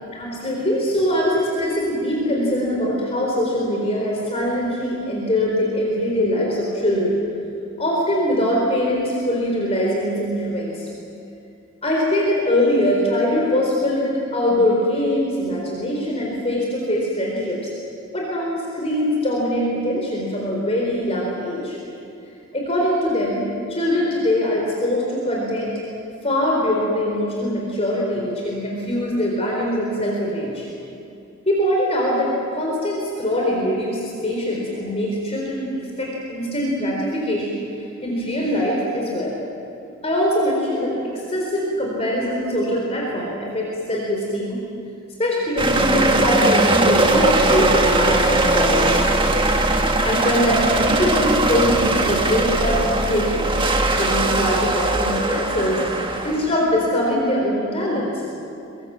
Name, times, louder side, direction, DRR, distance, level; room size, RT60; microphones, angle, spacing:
voice 1, 0.1-7.2 7.8-10.9 11.8-17.7 18.1-21.8 22.5-23.4 23.7-25.8 26.2-30.7 31.5-37.6 38.0-39.4 40.0-44.6 45.2-49.1 50.0-53.5 53.8-58.1, left 1 dB, 30° left, -2 dB, 3.9 m, -22 dB
sound 1, 45.6-56.5, right 2 dB, 25° right, 1.6 m, -19 dB
25.0 x 23.0 x 7.5 m, 2.7 s
head